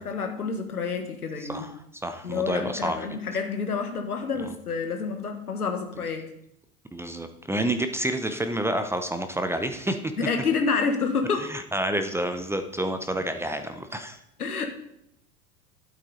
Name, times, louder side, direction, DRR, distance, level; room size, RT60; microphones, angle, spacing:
voice 1, 0.0-1.6 2.2-6.2 10.2-11.5 14.4-14.6, left 5 dB, 80° left, 5 dB, 1.7 m, -28 dB
voice 2, 1.5-3.2 4.4-4.5 6.9-10.0 11.5-14.2, right 1 dB, 5° right, 8 dB, 0.7 m, -29 dB
12.0 x 8.1 x 4.1 m, 0.75 s
figure-of-eight pair, 85°, 44 cm